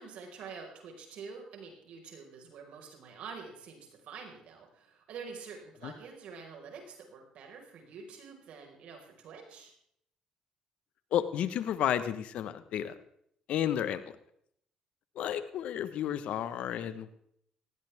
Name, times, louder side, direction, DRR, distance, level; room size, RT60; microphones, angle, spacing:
voice 1, 0.0-9.7, right 5 dB, 70° right, 2 dB, 5.1 m, -47 dB
voice 2, 11.1-12.9 13.5-14.1 15.1-17.1, left 10 dB, 70° left, 12 dB, 1.3 m, -32 dB
19.0 x 16.5 x 3.6 m, 0.69 s
supercardioid pair, 75°, 2 cm